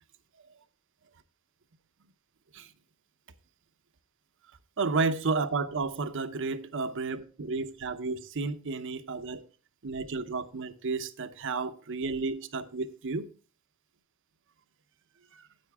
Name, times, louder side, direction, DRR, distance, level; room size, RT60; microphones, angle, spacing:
voice 1, 4.8-9.4 9.8-13.3 15.3-15.5, right 4 dB, 60° right, 0.8 m, -32 dB
9.6 x 8.7 x 3.5 m
head